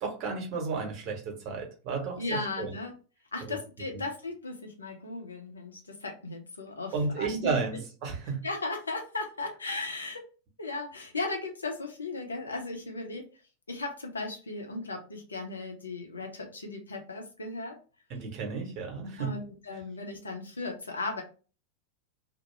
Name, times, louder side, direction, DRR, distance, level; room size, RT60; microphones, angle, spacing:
voice 1, 0.0-2.7 3.5-3.6 3.9-4.0 6.9-8.4 18.1-19.3, right 4 dB, 40° right, 1 dB, 0.9 m, -33 dB
voice 2, 2.2-2.9 3.3-7.5 8.4-10.2 10.6-13.3 13.7-17.8 19.2-21.2, left 3 dB, 75° left, 3 dB, 0.6 m, -36 dB
2.3 x 2.0 x 3.1 m, 0.35 s
figure-of-eight pair, 90°, 0 cm